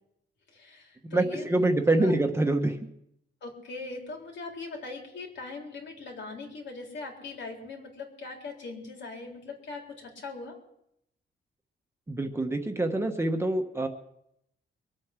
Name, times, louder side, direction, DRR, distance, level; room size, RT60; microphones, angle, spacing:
voice 1, 0.5-1.6 1.9-2.1 3.4-10.6, left 3 dB, 70° left, 0 dB, 4.0 m, -41 dB
voice 2, 1.1-2.8 12.1-13.9, right 2 dB, 15° right, 4 dB, 1.1 m, -25 dB
23.5 x 8.5 x 6.0 m, 0.77 s
wide cardioid pair, 165°, 19 cm